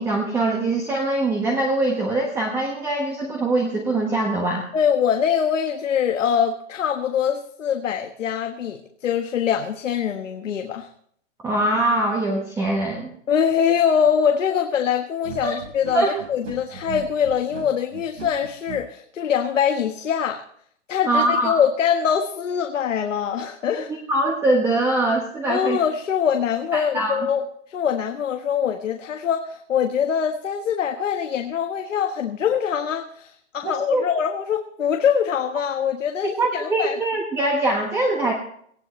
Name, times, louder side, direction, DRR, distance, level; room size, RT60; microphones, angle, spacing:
voice 1, 0.0-4.6 11.4-13.1 15.4-15.6 15.9-16.1 21.1-21.6 24.1-25.8 26.7-27.3 33.9-34.0 36.2-38.3, right 2 dB, 5° right, 0 dB, 1.2 m, -22 dB
voice 2, 4.7-10.9 13.3-20.4 20.9-23.9 25.5-27.4 27.7-37.0, left 8 dB, 90° left, 5 dB, 1.5 m, -23 dB
sound 1, 15.2-18.8, right 7 dB, 85° right, 5.2 m, -37 dB
18.5 x 15.0 x 3.2 m, 0.64 s
hypercardioid pair, 165°, 37 cm